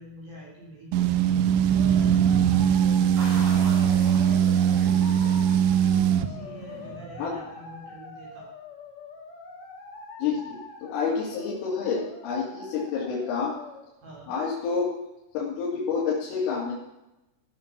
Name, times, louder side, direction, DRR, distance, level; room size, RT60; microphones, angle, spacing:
voice 1, 0.0-5.5 6.2-8.5 14.0-14.3, right 1 dB, 50° right, -3 dB, 4.6 m, -46 dB
sound 1, 0.9-6.3, right 9 dB, 85° right, 3.2 m, -21 dB
sound 2, 1.8-13.8, left 4 dB, 55° left, 2.8 m, -44 dB
sound 3, 3.2-7.7, right 1 dB, 70° right, 7.3 m, -42 dB
voice 2, 10.2-13.5 14.3-14.9 15.3-16.7, left 5 dB, 80° left, -6 dB, 5.0 m, -28 dB
17.5 x 7.6 x 6.0 m, 0.92 s
omnidirectional pair, 5.7 m